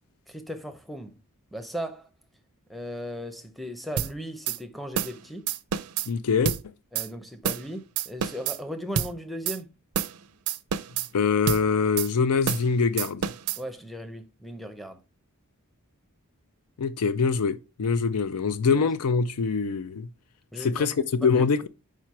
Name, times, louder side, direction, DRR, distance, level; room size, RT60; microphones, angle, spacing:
voice 1, 0.3-1.2 1.5-2.1 2.7-5.5 6.9-9.7 13.6-15.0 18.7-18.8 20.5-20.9 21.2-21.4, equal, ahead, 0.6 m, -37 dB
sound 1, 4.0-4.1 4.5-4.6 5.0-5.2 5.5-6.1 6.5-6.6 7.0-7.1 7.4-7.7 8.0-8.6 9.0-9.1 9.5-9.6 9.9-10.2 10.5-11.1 11.5-11.6 12.0-12.1 12.5-12.7 13.0-13.6, right 8 dB, 80° right, 0.5 m, -28 dB
voice 2, 6.1-6.5 11.1-13.3 16.8-20.1 20.6-21.7, left 5 dB, 85° left, 0.4 m, -24 dB
4.9 x 4.4 x 4.6 m
head